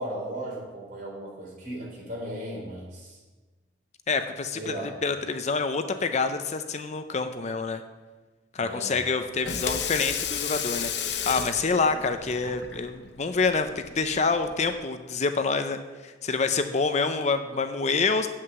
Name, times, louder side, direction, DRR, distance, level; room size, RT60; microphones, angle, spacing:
voice 1, 0.0-3.2 4.5-4.9 8.6-9.0, right 1 dB, 45° right, -3 dB, 3.7 m, -36 dB
voice 2, 4.1-4.8 5.0-7.8 8.5-13.7 13.9-18.3, left 4 dB, 40° left, 8 dB, 0.5 m, -27 dB
Water tap faucet / Sink (filling or washing), 9.2-14.7, left 7 dB, 65° left, 0.8 m, -33 dB
7.6 x 6.5 x 7.9 m, 1.3 s
head